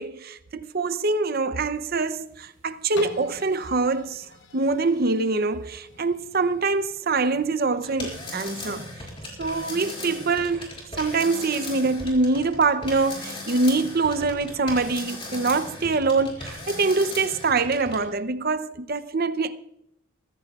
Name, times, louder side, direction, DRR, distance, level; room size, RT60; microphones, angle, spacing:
voice 1, 0.0-4.3 4.5-8.9 9.4-19.6, right 3 dB, 45° right, 0.6 m, -24 dB
sound 1, 1.9-17.3, right 1 dB, 65° right, 3.8 m, -52 dB
sound 2, 2.9-8.7 9.3-9.4, left 3 dB, 55° left, 0.9 m, -46 dB
sound 3, 7.8-18.1, left 2 dB, 25° left, 4.6 m, -37 dB
23.5 x 15.0 x 2.4 m
head